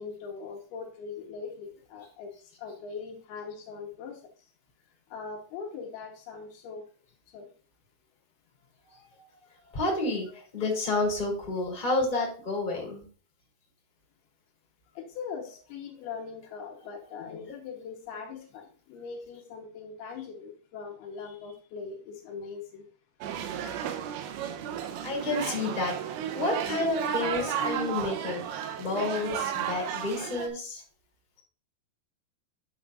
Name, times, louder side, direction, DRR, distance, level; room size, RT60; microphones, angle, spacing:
voice 1, 0.0-2.3 2.6-4.2 5.1-6.8 7.3-7.5 10.6-10.7 15.0-22.9, left 5 dB, 70° left, 2.8 m, -41 dB
voice 2, 9.0-9.4 9.7-13.0 25.0-28.4 28.8-30.8, left 2 dB, 15° left, 1.9 m, -30 dB
sound 1, 23.2-30.5, right 9 dB, 80° right, 3.0 m, -33 dB
9.6 x 7.2 x 2.5 m
omnidirectional pair, 5.2 m